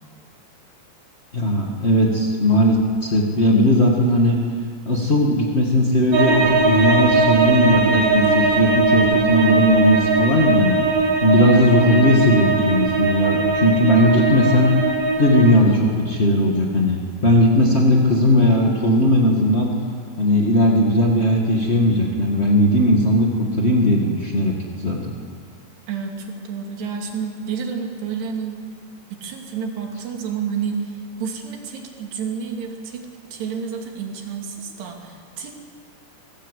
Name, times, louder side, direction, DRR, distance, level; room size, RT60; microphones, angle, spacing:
voice 1, 1.3-4.4 4.8-10.8 11.2-14.7 15.2-19.7 20.2-25.0, left 1 dB, 50° left, -1 dB, 0.7 m, -17 dB
sound 1, 6.1-15.5, right 4 dB, 55° right, 3.7 m, -20 dB
voice 2, 25.9-28.6 29.1-35.6, right 6 dB, 70° right, 2 dB, 4.8 m, -30 dB
26.0 x 18.5 x 8.3 m, 2.1 s
omnidirectional pair, 5.0 m